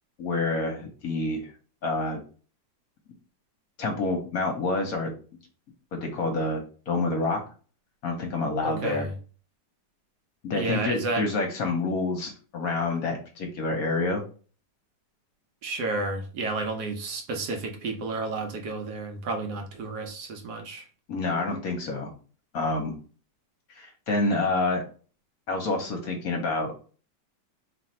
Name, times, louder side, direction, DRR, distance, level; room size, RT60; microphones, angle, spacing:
voice 1, 0.2-1.5 1.8-2.2 3.8-5.1 5.9-7.4 8.0-9.1 10.4-14.2 21.1-22.1 22.5-23.0 23.7-24.8 25.5-26.9, left 3 dB, 60° left, 1.1 m, -28 dB
voice 2, 8.6-9.1 10.5-11.2 15.6-20.9, right 3 dB, 70° right, 1.2 m, -31 dB
3.0 x 2.5 x 4.3 m
omnidirectional pair, 2.0 m